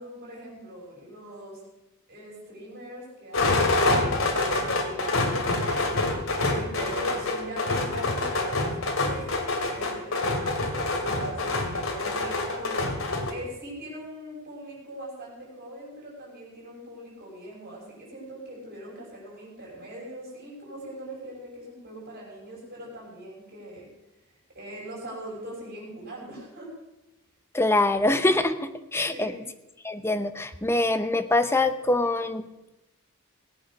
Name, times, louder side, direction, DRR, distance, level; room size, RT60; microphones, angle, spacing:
voice 1, 0.0-1.6 2.1-9.3 9.7-23.9 24.5-26.7 29.1-29.4, right 1 dB, 45° right, -3 dB, 6.1 m, -41 dB
sound 1, 3.3-13.3, left 2 dB, 70° left, 2.4 m, -26 dB
voice 2, 27.5-29.3 29.8-32.4, left 2 dB, 10° left, 10 dB, 0.8 m, -24 dB
18.5 x 8.7 x 6.3 m, 0.92 s
head